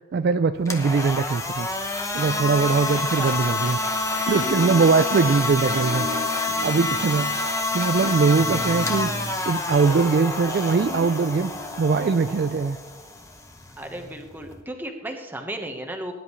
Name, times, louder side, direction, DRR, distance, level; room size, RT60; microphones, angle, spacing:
voice 1, 0.1-1.7 2.1-11.5 11.8-12.8, right 5 dB, 50° right, 11 dB, 0.3 m, -22 dB
sound 1, 0.5-14.6, left 3 dB, 15° left, 0.9 m, -28 dB
voice 2, 2.9-3.3 13.8-16.1, right 1 dB, 10° right, 3 dB, 1.2 m, -34 dB
sound 2, 4.3-5.1 5.7-7.3 8.4-12.6 12.9-13.0, right 1 dB, 70° right, 1.8 m, -35 dB
18.5 x 10.5 x 3.2 m, 1.2 s
head